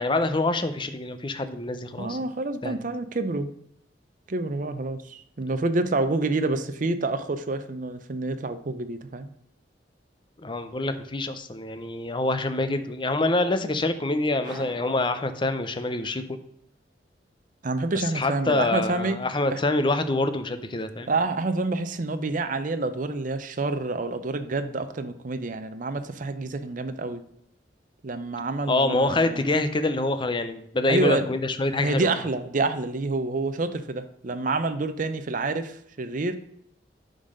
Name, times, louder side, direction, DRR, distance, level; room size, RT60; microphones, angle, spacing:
voice 1, 0.0-2.2 2.6-2.8 10.4-16.4 17.9-21.1 28.7-32.2, left 2 dB, 25° left, 10 dB, 0.7 m, -26 dB
voice 2, 2.0-3.5 4.3-9.3 17.6-19.2 19.5-19.6 21.1-27.2 28.0-29.5 30.9-31.3 31.8-36.4, right 3 dB, 45° right, 9 dB, 0.6 m, -28 dB
sound 1, 14.4-16.2, right 2 dB, 25° right, 2.2 m, -46 dB
10.0 x 4.0 x 6.4 m, 0.70 s
head